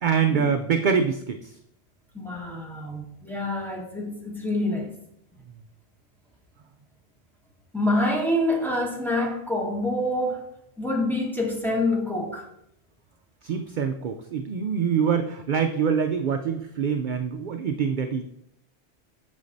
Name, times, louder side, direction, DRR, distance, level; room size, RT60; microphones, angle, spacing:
voice 1, 0.0-1.5 13.4-18.4, right 6 dB, 60° right, 0.5 m, -25 dB
voice 2, 2.1-4.9 7.7-10.5 10.8-12.5, left 1 dB, ahead, 1.3 m, -26 dB
8.4 x 6.3 x 2.6 m
omnidirectional pair, 1.1 m